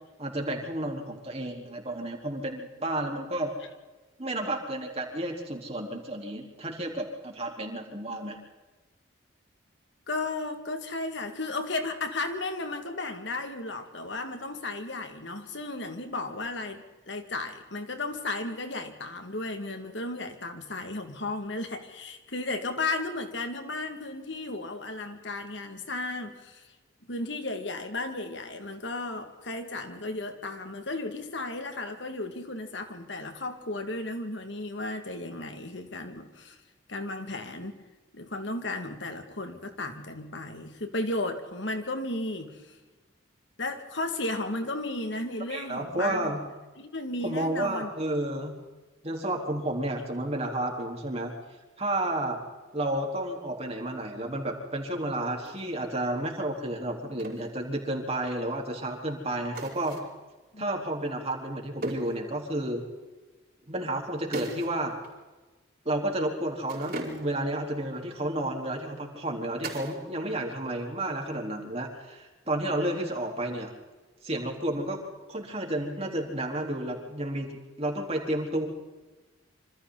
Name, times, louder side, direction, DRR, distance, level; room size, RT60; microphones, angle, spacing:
voice 1, 0.2-3.5 4.2-8.4 45.5-46.4 47.2-48.6 49.0-51.3 51.8-52.4 52.7-60.0 60.6-62.8 63.7-64.9 65.8-73.7 74.2-75.0 75.3-78.7, right 1 dB, 30° right, 1 dB, 4.3 m, -31 dB
voice 2, 10.1-26.8 27.1-36.6 36.9-37.8 38.1-42.8 43.6-46.4 46.8-47.9 60.5-60.7, left 2 dB, 70° left, 6 dB, 2.4 m, -34 dB
sound 1, 55.4-55.7 57.2-57.5 59.5-60.2 61.8-62.2 64.3-64.8 65.0-65.2 66.7-67.5 69.6-70.1 70.3-70.9 73.2-73.7, right 1 dB, 50° right, 4.9 m, -38 dB
27.0 x 26.0 x 4.2 m, 1.2 s
head